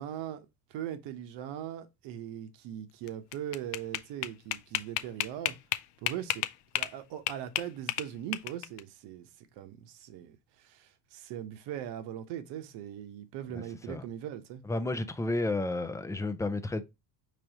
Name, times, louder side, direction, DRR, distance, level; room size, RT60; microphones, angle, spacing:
voice 1, 0.0-5.6 6.0-6.4 6.7-9.3 9.6-14.6, right 10 dB, 75° right, 1.0 m, -40 dB
sound 1, 3.1-7.0 7.3-8.8, left 15 dB, 75° left, 0.6 m, -32 dB
voice 2, 13.5-14.0 14.6-16.8, left 2 dB, 5° left, 0.4 m, -32 dB
5.1 x 3.3 x 2.9 m
cardioid pair, 115°, 43 cm